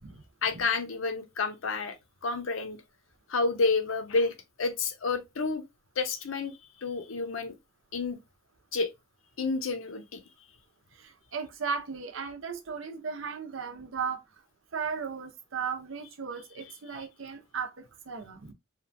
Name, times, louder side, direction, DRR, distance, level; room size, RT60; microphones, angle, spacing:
voice 1, 0.4-2.0 2.2-2.8 3.3-5.6 6.0-7.5 7.9-8.2 8.7-8.9 9.4-10.2, left 4 dB, 75° left, 0.6 m, -30 dB
voice 2, 10.9-14.2 14.7-18.5, right 6 dB, 75° right, 0.6 m, -36 dB
2.9 x 2.3 x 2.5 m
head